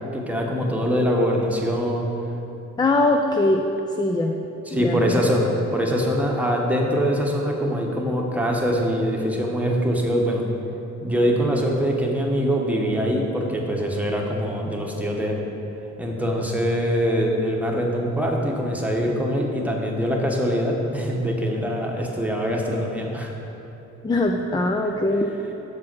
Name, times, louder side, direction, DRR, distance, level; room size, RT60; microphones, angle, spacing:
voice 1, 0.0-2.1 4.7-10.4 11.0-15.4 16.0-23.3, equal, 5° right, -1 dB, 1.1 m, -23 dB
voice 2, 2.8-3.6 4.0-4.4 4.8-5.1 24.0-25.3, left 2 dB, 15° left, 2 dB, 0.4 m, -21 dB
7.2 x 4.7 x 6.2 m, 3.0 s
cardioid pair, 90°, 30 cm